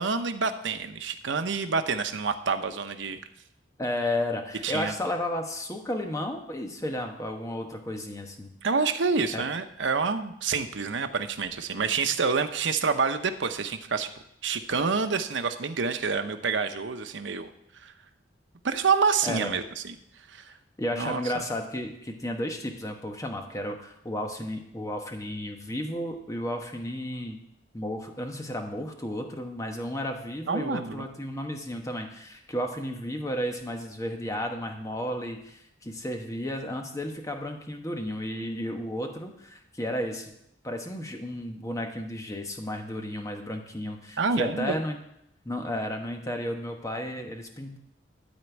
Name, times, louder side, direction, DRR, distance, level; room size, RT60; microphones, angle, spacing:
voice 1, 0.0-3.2 4.6-4.9 8.6-14.1 14.4-17.5 17.8-17.9 18.6-19.9 20.3-20.5 20.9-21.2 30.5-31.1 44.2-44.7, right 5 dB, 85° right, 8 dB, 0.8 m, -27 dB
voice 2, 3.8-8.5 9.3-9.5 19.2-19.5 20.8-27.4 27.7-40.3 40.6-45.0 45.4-47.8, left 1 dB, 20° left, 4 dB, 1.1 m, -33 dB
12.5 x 4.4 x 8.3 m, 0.78 s
head